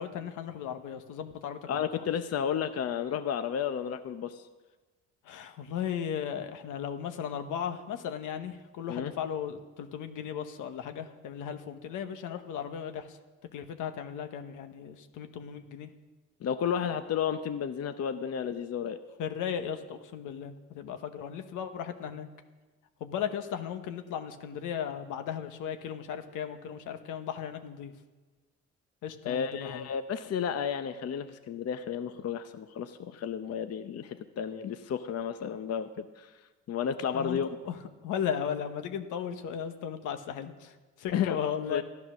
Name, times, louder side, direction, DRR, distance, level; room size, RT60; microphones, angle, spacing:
voice 1, 0.0-1.8 5.2-13.2 13.5-15.9 19.2-22.3 23.0-27.9 29.0-29.9 37.1-37.4 37.6-37.8 38.0-41.8, left 8 dB, 85° left, 7 dB, 1.1 m, -36 dB
voice 2, 1.7-4.4 8.9-9.1 16.4-19.0 29.2-36.3 36.7-37.6 41.1-41.4 41.7-41.8, left 8 dB, 55° left, 9 dB, 0.8 m, -32 dB
13.5 x 10.5 x 6.2 m, 1.2 s
cardioid pair, 90°, 30 cm